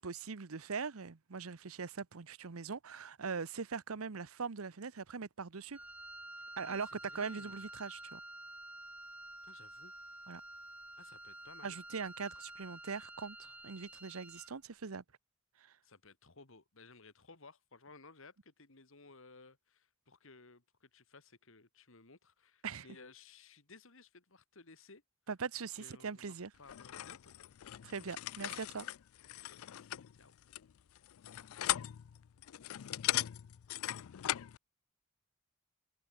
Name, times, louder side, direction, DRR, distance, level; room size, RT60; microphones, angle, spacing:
voice 1, 0.0-5.8 6.6-6.9 7.1-8.2 10.3-10.4 11.6-15.0 15.6-15.7 22.6-22.9 25.3-26.5 27.8-28.9, right 5 dB, 90° right, 0.9 m, -41 dB
Wind instrument woodwind instrument, 5.7-14.6, right 1 dB, 5° right, 0.6 m, -50 dB
voice 2, 6.6-7.6 9.4-9.9 11.0-11.8 15.8-25.0 25.8-27.4 29.6-30.3, left 3 dB, 70° left, 2.4 m, -58 dB
sound 1, 26.7-34.6, left 14 dB, 85° left, 0.4 m, -39 dB
head